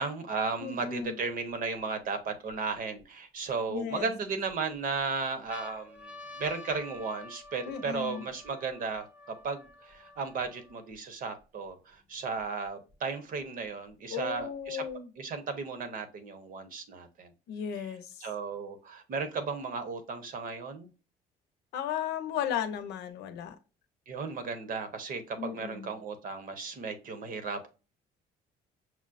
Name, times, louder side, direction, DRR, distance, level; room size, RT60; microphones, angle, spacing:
voice 1, 0.0-14.8 15.2-17.3 18.2-20.9 24.1-27.7, right 4 dB, 55° right, 0.9 m, -35 dB
voice 2, 0.6-1.2 3.7-4.1 7.7-8.2 14.1-15.1 17.5-18.3 21.7-23.6 25.3-25.9, left 8 dB, 80° left, 0.7 m, -35 dB
sound 1, 2.1-3.0 3.7-4.5 5.0-5.1 5.3-10.9 11.7-11.8 11.9-12.9 13.9-14.9, left 2 dB, 5° right, 0.7 m, -50 dB
5.9 x 2.0 x 2.5 m
cardioid pair, 110°, 17 cm